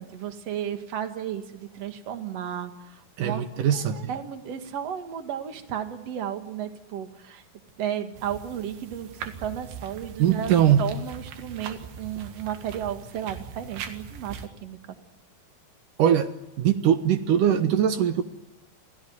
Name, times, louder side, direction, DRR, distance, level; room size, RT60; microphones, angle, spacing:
voice 1, 0.0-3.4 3.7-7.4 7.8-10.5 10.8-14.8, right 9 dB, 50° right, 2.6 m, -33 dB
voice 2, 3.2-4.1 10.2-10.9 16.0-18.2, right 9 dB, 65° right, 2.5 m, -22 dB
sound 1, 8.1-14.5, right 6 dB, 85° right, 3.8 m, -41 dB
28.0 x 17.0 x 9.5 m
omnidirectional pair, 4.4 m